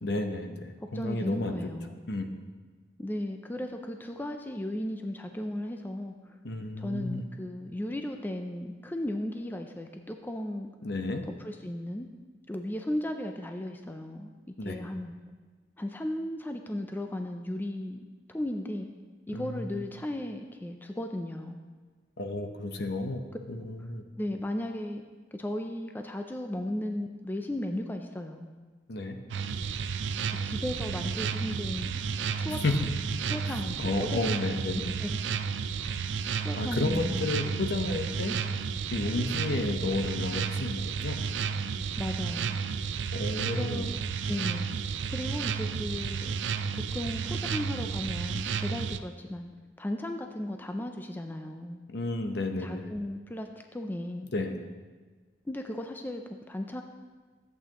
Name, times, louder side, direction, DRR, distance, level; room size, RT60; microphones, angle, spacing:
voice 1, 0.0-1.6 2.1-2.3 6.4-7.2 10.8-11.2 14.6-14.8 19.3-19.7 22.2-24.0 28.9-29.2 32.6-32.7 33.5-34.8 36.5-38.4 38.9-41.2 43.1-43.9 51.9-52.9 54.3-54.6, left 2 dB, 65° left, 5 dB, 0.8 m, -32 dB
voice 2, 0.8-2.0 3.0-6.4 6.8-10.7 11.4-12.1 12.5-14.3 14.6-15.2 15.8-18.9 19.3-21.6 24.2-25.0 25.3-28.5 30.3-32.9 33.2-34.2 34.7-35.2 35.8-36.1 36.4-37.7 42.0-42.6 43.4-44.0 44.3-44.7 45.1-46.3 46.7-49.5 49.8-51.8 52.6-54.3 55.5-56.8, left 1 dB, 10° left, 5 dB, 0.4 m, -36 dB
sound 1, 29.3-49.0, right 6 dB, 80° right, 0.4 m, -32 dB
13.5 x 8.3 x 3.0 m, 1.4 s
head